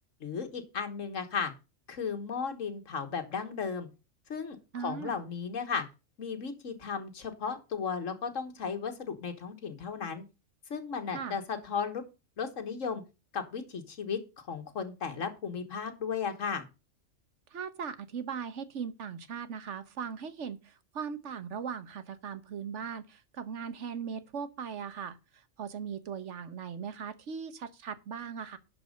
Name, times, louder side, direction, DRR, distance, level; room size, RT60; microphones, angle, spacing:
voice 1, 0.2-1.5 1.9-3.9 4.3-5.8 6.2-10.2 10.7-12.0 12.4-13.0 13.3-14.2 14.5-16.6, left 6 dB, 90° left, 1.8 m, -35 dB
voice 2, 4.7-5.1 11.1-11.4 17.5-25.2 25.6-28.6, right 7 dB, 70° right, 1.3 m, -39 dB
11.5 x 4.8 x 6.4 m
omnidirectional pair, 1.3 m